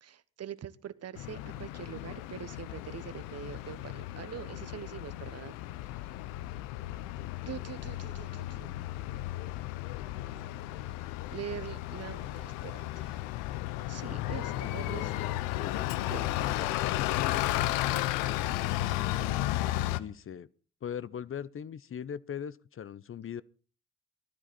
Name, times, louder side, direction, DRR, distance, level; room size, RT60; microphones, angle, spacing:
voice 1, 0.0-5.5 7.4-8.8 11.3-13.2 13.9-15.1 16.1-16.5 17.8-18.1 19.2-19.3, right 9 dB, 45° right, 1.1 m, -43 dB
Bus, 1.1-20.0, left 16 dB, 75° left, 0.8 m, -34 dB
voice 2, 14.4-15.9 16.4-18.6 20.0-20.5 20.8-23.4, left 8 dB, 40° left, 0.7 m, -41 dB
19.0 x 12.5 x 4.2 m
hypercardioid pair, 45°, 34 cm